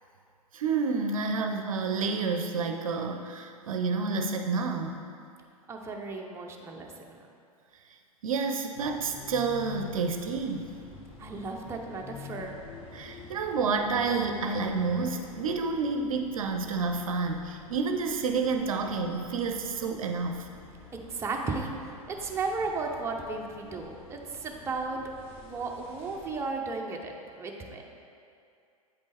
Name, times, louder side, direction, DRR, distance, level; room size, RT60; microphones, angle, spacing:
voice 1, 0.5-5.0 8.2-10.8 12.9-20.5, right 4 dB, 65° right, 5 dB, 0.6 m, -29 dB
voice 2, 5.7-7.3 11.2-12.5 20.9-21.7 22.1-25.0 25.4-27.8, right 3 dB, 15° right, 1 dB, 0.6 m, -35 dB
sound 1, 8.8-26.5, left 4 dB, 30° left, 1.0 m, -48 dB
8.3 x 5.2 x 3.4 m, 2.4 s
figure-of-eight pair, 95°, 19 cm